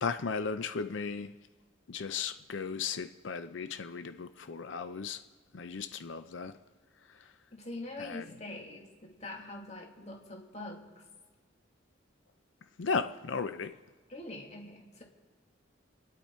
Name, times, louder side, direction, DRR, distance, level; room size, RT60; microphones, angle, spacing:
voice 1, 0.0-1.3 1.9-5.2 5.5-6.5 7.1-7.3 8.0-8.3 12.8-13.7, left 5 dB, 70° left, 0.6 m, -35 dB
voice 2, 7.5-11.0 14.1-15.0, left 2 dB, 35° left, 2.0 m, -44 dB
29.0 x 10.5 x 4.4 m
head